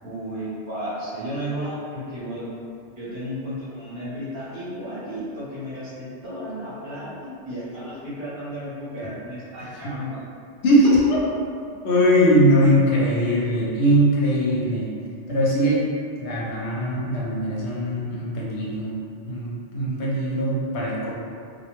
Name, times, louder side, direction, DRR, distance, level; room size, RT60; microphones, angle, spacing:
voice 1, 0.0-2.5 2.9-10.2, equal, 50° right, -10 dB, 0.9 m, -33 dB
voice 2, 9.6-9.9 10.6-11.2 11.8-14.9 15.3-15.9 16.2-19.0 19.3-21.1, equal, 75° left, -5 dB, 0.9 m, -20 dB
2.2 x 2.1 x 2.9 m, 2.3 s
omnidirectional pair, 1.2 m